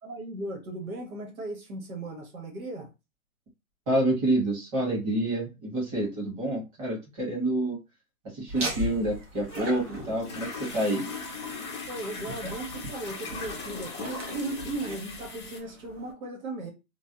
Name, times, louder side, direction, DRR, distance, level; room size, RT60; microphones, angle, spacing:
voice 1, 0.0-2.9 11.9-16.7, right 2 dB, 90° right, 1.3 m, -36 dB
voice 2, 3.9-7.8 8.3-11.0, right 1 dB, 25° right, 1.6 m, -28 dB
Laughter, 8.5-16.1, right 1 dB, 60° right, 1.5 m, -40 dB
sound 1, 8.6-15.6, left 4 dB, 20° left, 0.5 m, -39 dB
3.1 x 2.2 x 2.8 m
hypercardioid pair, 160°, 41 cm